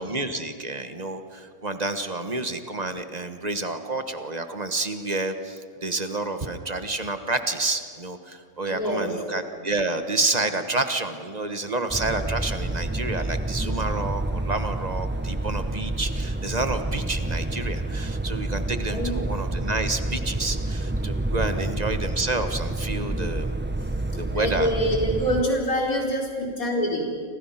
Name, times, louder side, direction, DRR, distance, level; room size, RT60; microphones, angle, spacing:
voice 1, 0.0-23.5 24.2-24.7, right 2 dB, 30° right, 8 dB, 1.4 m, -29 dB
voice 2, 8.6-9.2 18.8-19.2 21.5-21.8 23.8-27.2, equal, 90° left, -1 dB, 4.9 m, -26 dB
sound 1, 11.9-25.4, right 2 dB, 10° right, 0.6 m, -28 dB
30.0 x 26.0 x 5.9 m, 2.2 s
omnidirectional pair, 1.4 m